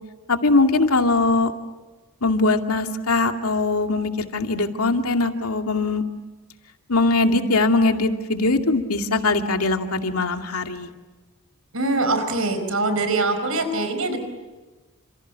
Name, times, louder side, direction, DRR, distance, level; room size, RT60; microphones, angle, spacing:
voice 1, 0.3-1.5 2.2-6.0 6.9-10.9, left 3 dB, 85° left, 5 dB, 2.4 m, -21 dB
voice 2, 11.7-14.2, right 2 dB, 70° right, 9 dB, 4.8 m, -23 dB
29.5 x 27.5 x 7.1 m, 1.2 s
head